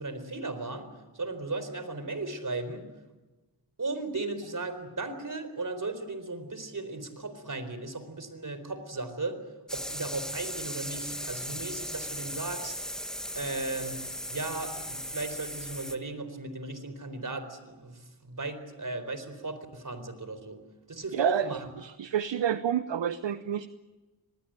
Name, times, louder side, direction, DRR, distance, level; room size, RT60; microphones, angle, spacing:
voice 1, 0.0-2.9 3.8-9.4 9.7-12.8 13.3-14.0 14.3-20.6 20.9-21.7, right 2 dB, 40° right, 11 dB, 4.3 m, -36 dB
sound 1, 9.7-16.0, equal, ahead, 1.5 m, -37 dB
voice 2, 21.1-23.7, right 9 dB, 70° right, 13 dB, 0.9 m, -29 dB
24.5 x 20.0 x 9.0 m, 1.2 s
cardioid pair, 60°, 46 cm